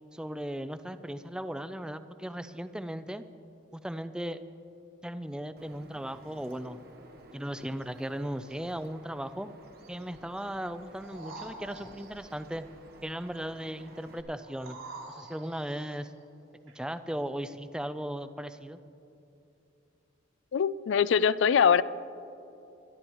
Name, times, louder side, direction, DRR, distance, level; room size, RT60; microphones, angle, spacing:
voice 1, 0.1-3.2 3.7-4.4 5.0-6.9 7.3-9.5 9.9-12.7 13.0-14.8 15.1-16.1 16.6-18.8, equal, 5° right, 11 dB, 0.4 m, -37 dB
Bird vocalization bird call bird song, 5.6-14.2, right 2 dB, 50° right, 1.0 m, -54 dB
sound 1, 11.0-12.3 14.4-16.0 16.7-16.8, right 2 dB, 90° right, 3.6 m, -46 dB
voice 2, 20.5-21.8, left 7 dB, 65° left, 17 dB, 0.3 m, -23 dB
24.0 x 11.5 x 3.0 m, 2.8 s
head